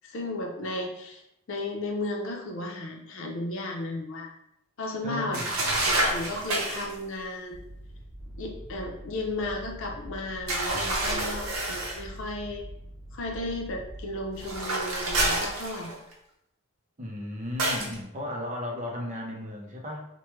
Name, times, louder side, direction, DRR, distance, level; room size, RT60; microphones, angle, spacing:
voice 1, 0.0-1.2 1.5-4.4 4.8-7.6 8.4-12.6 13.1-16.0, left 2 dB, 60° left, 1 dB, 0.6 m, -34 dB
voice 2, 5.0-5.6 17.0-20.1, left 1 dB, 35° right, 0 dB, 0.6 m, -35 dB
sound 1, 5.3-6.9 10.5-12.0 14.4-16.1 17.6-18.0, right 1 dB, 65° right, 0.7 m, -28 dB
sound 2, 7.5-14.6, right 1 dB, 25° left, 1.0 m, -44 dB
4.6 x 2.2 x 3.1 m, 0.80 s
head